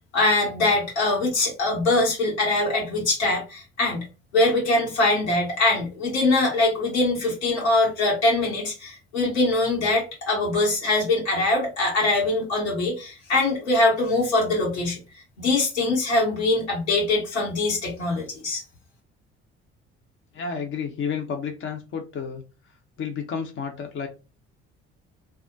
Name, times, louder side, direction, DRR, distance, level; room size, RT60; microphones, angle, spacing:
voice 1, 0.1-4.1 4.3-15.0 15.4-18.6, left 2 dB, 85° left, 1.1 m, -23 dB
voice 2, 20.3-22.4 23.0-24.1, left 6 dB, 40° left, 0.7 m, -31 dB
2.3 x 2.1 x 2.7 m
figure-of-eight pair, 50°, 33 cm